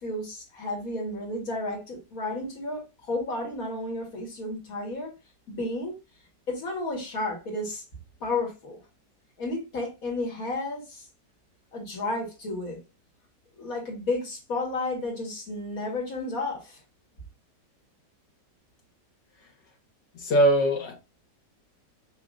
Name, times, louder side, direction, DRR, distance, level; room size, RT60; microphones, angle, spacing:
voice 1, 0.0-5.1 5.5-5.9 6.5-7.8 8.2-8.8 9.4-11.1 11.7-12.8 13.6-16.8, left 2 dB, 55° left, 2.1 m, -32 dB
voice 2, 20.1-20.9, right 1 dB, 75° left, 2.2 m, -21 dB
6.1 x 2.9 x 2.5 m
omnidirectional pair, 1.9 m